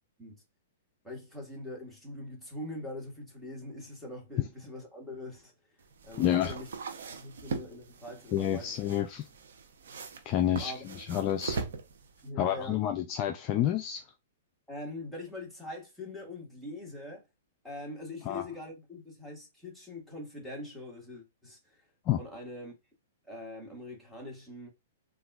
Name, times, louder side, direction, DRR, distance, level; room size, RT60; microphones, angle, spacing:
voice 1, 1.0-5.5 6.0-6.7 7.1-8.8 10.6-10.8 12.2-12.8 14.7-17.2 17.6-21.8 22.2-22.7 23.2-24.7, left 1 dB, ahead, 1.6 m, -43 dB
sound 1, 5.8-12.3, right 5 dB, 75° right, 0.7 m, -41 dB
voice 2, 6.2-6.6 8.3-9.3 10.3-11.6 12.4-14.0 18.3-18.4 22.1-22.2, left 11 dB, 35° left, 0.4 m, -29 dB
4.0 x 2.5 x 2.3 m
hypercardioid pair, 130°, 0 cm